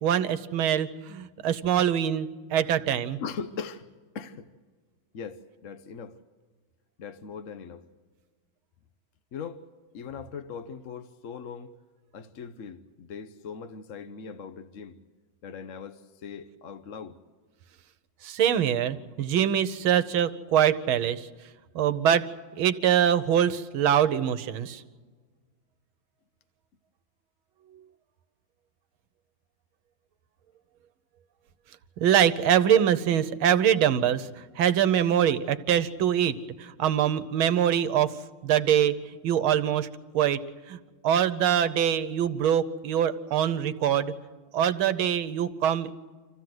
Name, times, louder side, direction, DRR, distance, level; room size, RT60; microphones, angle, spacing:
voice 1, 0.0-3.2 18.2-21.3 21.7-22.3 22.5-24.8 27.7-27.8 32.0-40.4 40.7-40.8 41.0-44.1 44.5-45.9, right 9 dB, 85° right, 1.7 m, -24 dB
voice 2, 3.2-3.9 4.1-4.5 5.1-6.2 7.0-7.9 9.3-9.6 9.9-11.7 12.1-15.0 15.4-17.2, left 6 dB, 55° left, 0.9 m, -40 dB
26.5 x 15.5 x 7.8 m
omnidirectional pair, 2.2 m